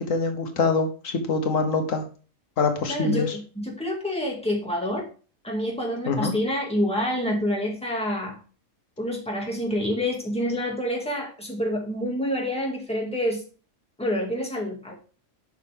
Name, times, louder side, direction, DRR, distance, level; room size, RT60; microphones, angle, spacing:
voice 1, 0.0-2.0 2.6-3.4 6.1-6.3, left 4 dB, 80° left, 6 dB, 1.5 m, -24 dB
voice 2, 2.9-5.1 5.4-8.4 9.0-13.4 14.0-14.9, equal, 5° left, -1 dB, 2.1 m, -27 dB
7.8 x 5.8 x 3.5 m, 0.36 s
omnidirectional pair, 1.3 m